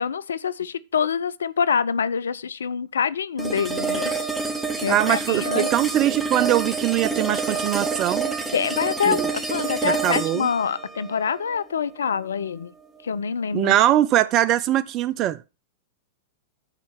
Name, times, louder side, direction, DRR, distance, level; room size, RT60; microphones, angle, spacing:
voice 1, 0.0-4.1 4.8-5.7 8.5-9.2 9.5-12.7 13.0-13.7, left 6 dB, 75° left, 0.5 m, -25 dB
sound 1, 3.4-12.4, right 4 dB, 10° right, 1.7 m, -28 dB
voice 2, 4.9-8.3 9.1-9.3 9.8-10.5 13.5-15.4, right 13 dB, 40° right, 0.4 m, -22 dB
8.2 x 4.5 x 6.7 m
figure-of-eight pair, 95°, 0 cm